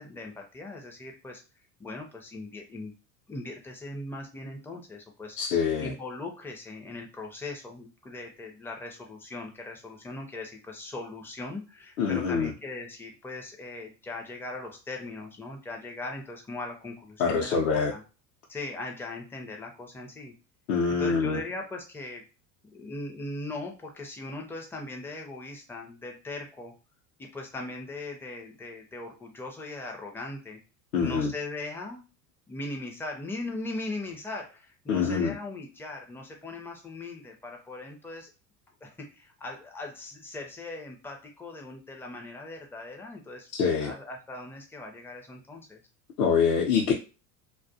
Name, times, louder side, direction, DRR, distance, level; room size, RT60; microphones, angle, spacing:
voice 1, 0.0-1.4 1.8-2.9 3.3-5.4 5.8-18.0 18.5-20.3 21.0-22.2 22.7-26.7 27.2-30.6 31.0-32.0 32.5-38.3 38.8-43.5 43.8-45.8, left 2 dB, 5° left, 2 dB, 0.4 m, -39 dB
voice 2, 5.4-5.9 12.0-12.5 17.2-17.9 20.7-21.4 30.9-31.3 34.9-35.4 43.5-43.9 46.2-46.9, left 6 dB, 60° left, -2 dB, 0.7 m, -25 dB
2.3 x 2.3 x 2.6 m, 0.32 s
figure-of-eight pair, 75°, 49 cm